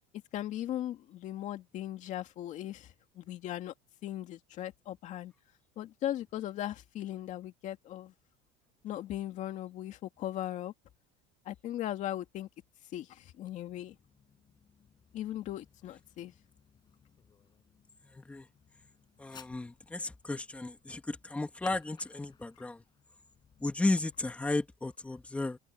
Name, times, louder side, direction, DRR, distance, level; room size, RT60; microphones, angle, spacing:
voice 1, 0.3-3.7 4.0-5.3 5.8-8.1 8.8-10.7 11.5-12.5 12.9-14.0 15.1-16.3, left 12 dB, 40° left, 2.2 m, -38 dB
Fireworks, 13.4-24.1, left 7 dB, 20° left, 7.5 m, -60 dB
voice 2, 18.1-18.5 19.2-22.8 23.6-25.6, left 2 dB, 5° left, 2.4 m, -34 dB
open air
cardioid pair, 165°, 19 cm